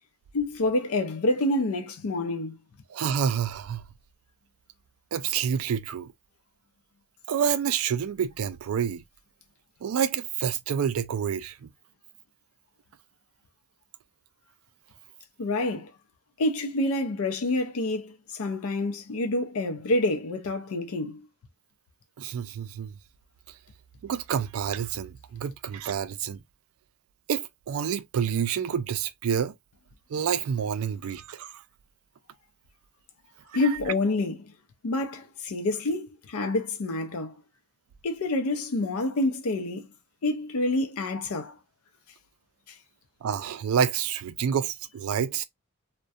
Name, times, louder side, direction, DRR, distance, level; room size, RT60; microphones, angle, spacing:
voice 1, 0.3-2.6 15.4-15.9 16.4-21.3 33.5-34.5 34.8-37.3 38.0-39.9 40.2-41.6 42.7-42.8, left 2 dB, 85° left, 0.5 m, -27 dB
voice 2, 2.9-3.9 5.1-6.1 7.3-9.0 9.8-11.7 22.2-22.9 24.0-26.4 27.3-29.6 30.1-31.6 43.2-45.4, right 8 dB, 80° right, 0.4 m, -28 dB
2.3 x 2.1 x 2.6 m
head